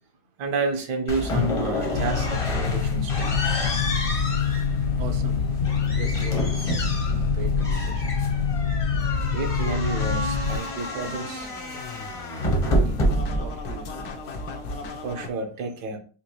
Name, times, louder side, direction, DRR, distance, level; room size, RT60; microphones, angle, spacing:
voice 1, 0.4-3.4 9.3-11.5 15.0-16.0, right 4 dB, 80° right, 4 dB, 1.4 m, -30 dB
sound 1, 1.1-15.1, left 1 dB, 35° left, 0.5 m, -29 dB
sound 2, 1.9-10.6, left 6 dB, 70° left, 1.1 m, -25 dB
voice 2, 5.0-5.5 5.9-8.2 8.9-9.0 12.7-14.2, right 5 dB, 65° right, 6 dB, 0.8 m, -41 dB
Scratching (performance technique), 10.4-15.3, left 2 dB, 85° left, 1.4 m, -36 dB
5.0 x 2.9 x 2.8 m, 0.39 s
omnidirectional pair, 1.8 m